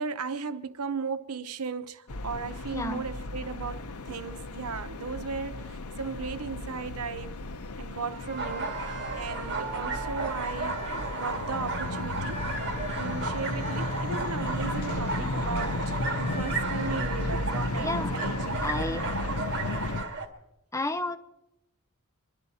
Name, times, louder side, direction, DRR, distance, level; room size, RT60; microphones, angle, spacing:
voice 1, 0.0-7.4 7.8-10.8 11.2-12.5 13.0-18.6, right 5 dB, 85° right, 0.8 m, -36 dB
sound 1, 2.1-20.0, left 2 dB, 85° left, 0.8 m, -34 dB
voice 2, 2.7-3.0 17.8-18.1 18.6-19.0 20.7-21.2, left 2 dB, 15° left, 0.6 m, -31 dB
sound 2, 8.0-15.2 15.9-17.2, right 3 dB, 30° right, 2.1 m, -44 dB
sound 3, 8.4-20.3, right 3 dB, 55° right, 1.8 m, -34 dB
25.5 x 11.5 x 4.1 m
head